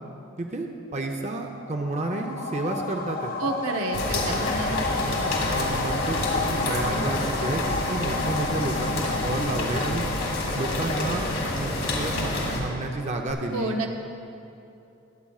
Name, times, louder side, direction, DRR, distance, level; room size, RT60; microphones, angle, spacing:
voice 1, 0.4-3.3 4.3-5.1 5.4-10.0 10.6-13.8, right 2 dB, 30° right, 3 dB, 0.6 m, -31 dB
sound 1, 1.5-13.0 13.3-13.4, left 3 dB, 40° left, 0.6 m, -33 dB
voice 2, 3.4-4.8 5.1-5.4 13.5-14.0, right 2 dB, 80° right, 3 dB, 0.9 m, -30 dB
sound 2, 3.9-12.6, left 1 dB, 85° left, 2.1 m, -28 dB
21.5 x 8.4 x 2.4 m, 2.7 s
head